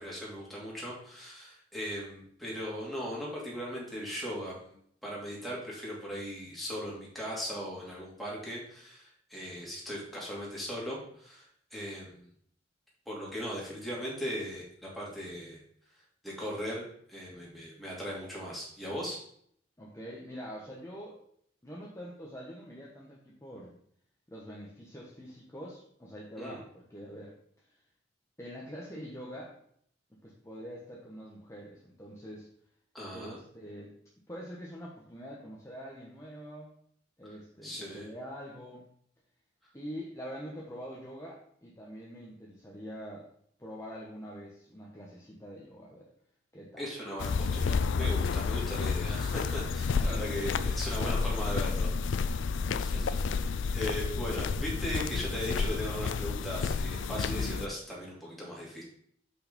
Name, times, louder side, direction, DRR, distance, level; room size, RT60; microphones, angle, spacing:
voice 1, 0.0-4.8 5.0-12.3 13.1-15.6 16.2-16.8 17.1-19.2 26.4-26.6 32.9-33.4 37.2-37.3 37.6-38.1 46.8-52.5 52.8-53.1 53.4-58.8, equal, ahead, -5 dB, 2.7 m, -38 dB
voice 2, 19.8-21.2 21.6-23.8 24.3-27.3 28.4-29.6 30.1-32.5 33.1-33.9 34.3-36.7 37.2-38.9 39.7-43.3 43.6-46.1 46.5-46.8 49.9-50.8 52.6-53.6, equal, 15° left, -4 dB, 1.3 m, -45 dB
sound 1, 47.2-57.7, left 5 dB, 80° left, 0.4 m, -30 dB
6.7 x 5.5 x 5.2 m, 0.64 s
head